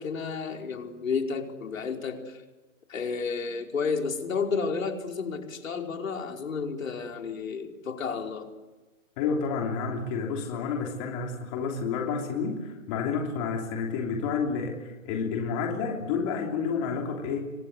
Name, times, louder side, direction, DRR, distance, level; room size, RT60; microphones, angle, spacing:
voice 1, 0.0-2.4 2.9-8.5, left 5 dB, 80° left, 3 dB, 5.1 m, -31 dB
voice 2, 9.2-17.4, left 5 dB, 25° left, 1 dB, 3.2 m, -30 dB
28.5 x 24.5 x 8.2 m, 1.2 s
hypercardioid pair, 170°, 39 cm